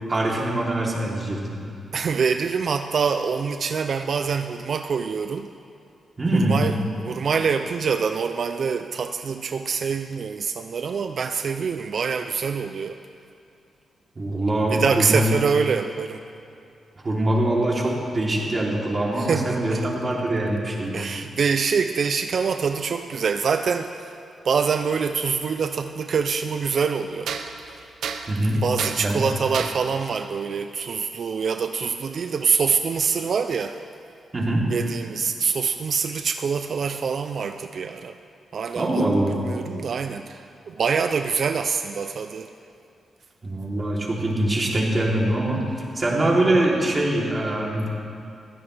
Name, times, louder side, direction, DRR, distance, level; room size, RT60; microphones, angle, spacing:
voice 1, 0.1-1.6 6.2-6.7 14.1-15.3 17.0-21.0 28.3-28.6 29.0-29.2 34.3-34.7 38.7-39.4 43.4-45.6 45.9-47.9, right 1 dB, 30° right, -3 dB, 3.3 m, -23 dB
voice 2, 1.9-5.5 6.3-13.0 14.7-16.2 19.2-19.9 20.9-24.2 24.4-27.3 28.5-33.8 34.7-38.2 38.5-39.0 39.4-42.5, right 6 dB, 60° right, 7 dB, 0.5 m, -25 dB
sound 1, 19.9-21.3 22.6-22.7 24.8-24.9 25.7-25.8 27.2-29.9, right 6 dB, 85° right, 0.9 m, -33 dB
21.5 x 15.5 x 3.4 m, 2.5 s
cardioid pair, 95°, 0 cm